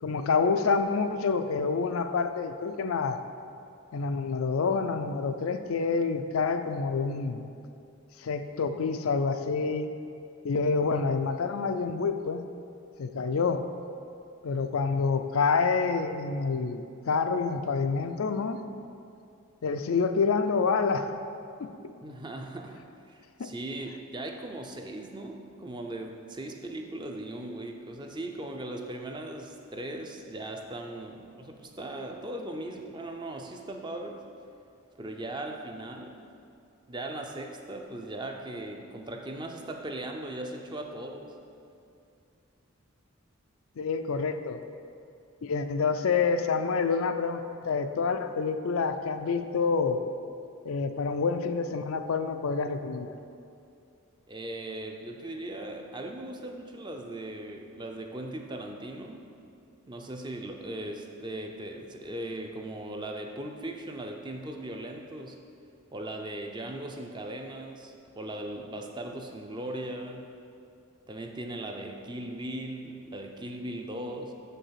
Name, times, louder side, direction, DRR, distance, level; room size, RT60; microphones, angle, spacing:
voice 1, 0.0-3.2 3.9-7.4 8.2-9.9 10.4-12.5 13.0-13.7 14.4-18.6 19.6-21.1 21.6-21.7 23.4-23.5 43.8-44.6 45.4-50.0 50.6-53.1, left 4 dB, 80° left, 8 dB, 0.4 m, -27 dB
voice 2, 22.0-22.8 23.1-34.2 35.0-36.2 36.9-41.3 54.3-59.2 59.9-65.4 65.9-70.3 71.1-74.3, right 1 dB, 20° right, 3 dB, 0.5 m, -38 dB
6.8 x 5.5 x 5.7 m, 2.5 s
head